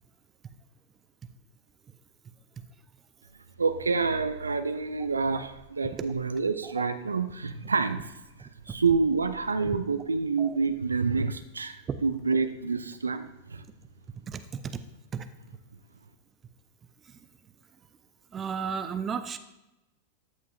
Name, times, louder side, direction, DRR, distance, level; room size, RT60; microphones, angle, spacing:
voice 1, 3.6-8.1 8.4-13.6, right 4 dB, 75° right, 10 dB, 0.5 m, -28 dB
voice 2, 8.4-8.7 10.4-10.6 11.9-12.0 14.3-14.8 15.1-15.3 17.0-17.2 18.3-19.4, right 6 dB, 25° right, 10 dB, 0.6 m, -34 dB
13.5 x 9.3 x 2.4 m, 0.99 s
figure-of-eight pair, 90°, 0 cm